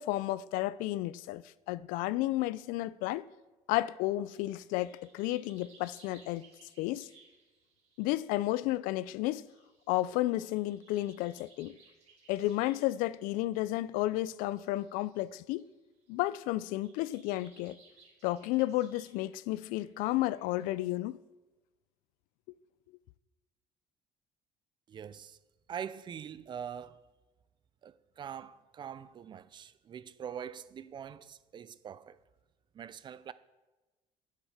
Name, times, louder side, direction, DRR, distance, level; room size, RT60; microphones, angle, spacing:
voice 1, 0.0-3.3 3.7-6.5 6.8-7.1 8.0-9.5 9.9-11.7 12.3-15.6 16.1-17.8 18.2-21.2, left 16 dB, 90° left, 0.4 m, -32 dB
sound 1, 4.3-15.7 16.0-16.2 16.5-20.7, right 4 dB, 50° right, 2.7 m, -63 dB
voice 2, 24.9-25.4 25.7-27.0 27.8-32.2 32.7-33.3, right 8 dB, 35° right, 0.4 m, -43 dB
8.3 x 7.4 x 5.6 m
cardioid pair, 135°, 14 cm